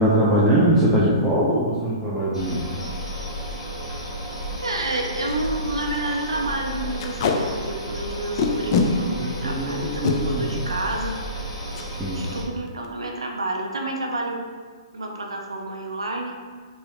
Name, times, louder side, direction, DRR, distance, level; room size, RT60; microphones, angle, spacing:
voice 1, 0.0-2.7 9.2-10.4 12.0-12.3, right 1 dB, 5° right, -9 dB, 0.5 m, -21 dB
sound 1, 2.3-12.4, right 1 dB, 85° left, 1.2 m, -32 dB
Packing tape duct tape, 3.3-3.5 4.0-4.1 4.3-4.4 4.9-5.0 5.3-5.5 5.8-6.0 7.0-7.4 8.4-8.9 9.8-10.2 11.7-11.9 12.2-12.4 12.7-13.1, left 6 dB, 45° left, 0.4 m, -23 dB
voice 2, 4.6-11.2 12.1-14.5 14.9-16.4, right 2 dB, 80° right, 1 dB, 0.4 m, -29 dB
3.0 x 2.6 x 3.1 m, 1.5 s
figure-of-eight pair, 120°, 3 cm